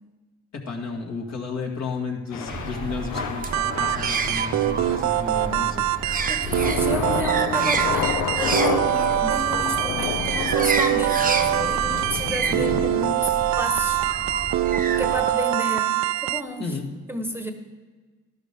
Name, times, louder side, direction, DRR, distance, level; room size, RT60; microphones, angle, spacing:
voice 1, 0.5-5.8 12.4-12.7 16.6-16.9, left 4 dB, 60° left, 0 dB, 2.2 m, -32 dB
Thunder / Rain, 2.3-13.1, left 8 dB, 80° left, 0.8 m, -31 dB
sound 1, 2.5-15.3, right 4 dB, 30° right, 0.8 m, -30 dB
sound 2, 3.5-16.4, right 13 dB, 65° right, 0.4 m, -24 dB
voice 2, 5.1-5.8 6.3-13.3 13.6-16.8 17.1-17.5, equal, 10° right, 5 dB, 1.1 m, -32 dB
13.0 x 12.0 x 3.6 m, 1.4 s
cardioid pair, 90°, 30 cm